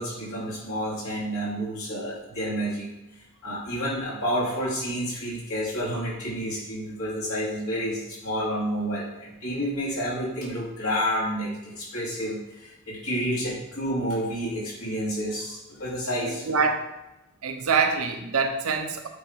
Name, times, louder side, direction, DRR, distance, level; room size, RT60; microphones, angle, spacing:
voice 1, 0.0-2.9 3.4-16.5, equal, 80° left, -5 dB, 2.2 m, -29 dB
voice 2, 16.2-16.9 17.4-19.1, right 5 dB, 85° right, 6 dB, 0.7 m, -25 dB
8.3 x 2.9 x 5.0 m, 0.96 s
head